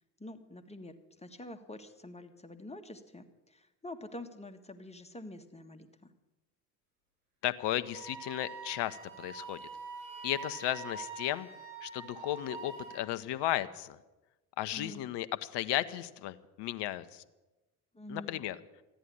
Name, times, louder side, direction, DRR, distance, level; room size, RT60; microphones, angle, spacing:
voice 1, 0.2-6.1 14.7-15.0 17.9-18.4, left 1 dB, 15° left, 8 dB, 1.7 m, -47 dB
voice 2, 7.4-9.6 10.2-11.5 11.8-14.0 14.6-17.2 18.1-18.6, left 14 dB, 55° left, 14 dB, 1.0 m, -34 dB
Wind instrument woodwind instrument, 7.9-13.1, right 5 dB, 50° right, 7.9 m, -45 dB
14.0 x 10.5 x 9.9 m, 1.1 s
hypercardioid pair, 60°, 49 cm